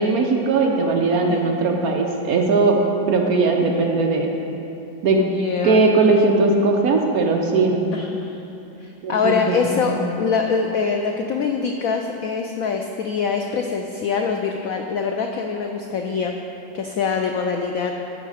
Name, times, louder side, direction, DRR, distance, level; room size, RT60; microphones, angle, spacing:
voice 1, 0.0-2.8 3.1-4.3 5.0-5.2 5.6-7.8 9.0-9.6 9.9-10.0, right 3 dB, 60° right, 1 dB, 1.0 m, -19 dB
voice 2, 5.2-5.8 7.9-8.4 8.8-16.3 16.7-17.9, left 5 dB, 90° left, 3 dB, 0.7 m, -24 dB
12.5 x 5.4 x 4.8 m, 3.0 s
omnidirectional pair, 2.0 m